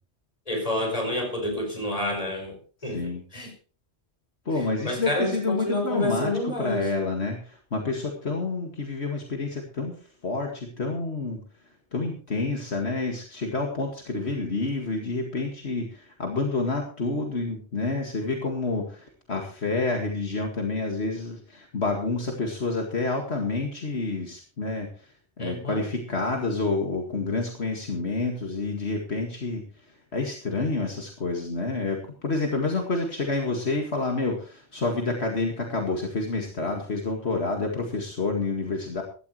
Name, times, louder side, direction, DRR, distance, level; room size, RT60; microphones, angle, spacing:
voice 1, 0.5-2.6 2.8-3.5 4.6-6.9 25.4-25.9, left 1 dB, 30° left, 3 dB, 5.3 m, -29 dB
voice 2, 4.5-9.9 10.2-11.4 11.9-24.9 25.4-29.6 30.1-39.0, left 3 dB, 70° left, 2 dB, 2.3 m, -28 dB
16.0 x 13.5 x 3.2 m, 0.38 s
omnidirectional pair, 1.2 m